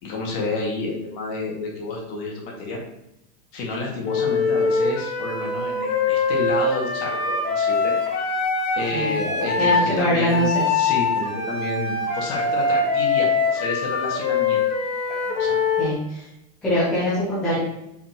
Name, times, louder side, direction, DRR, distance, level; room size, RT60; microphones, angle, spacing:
voice 1, 0.0-2.8 3.5-7.9 8.7-14.6 15.2-15.6, left 3 dB, 35° left, -1 dB, 1.9 m, -30 dB
Wind instrument woodwind instrument, 4.0-9.9 10.3-15.9, left 4 dB, 90° left, 2.6 m, -23 dB
voice 2, 9.6-10.6 15.8-16.2 16.6-17.6, equal, 5° left, -11 dB, 0.3 m, -22 dB
6.8 x 5.9 x 2.9 m, 0.84 s
supercardioid pair, 175°, 44 cm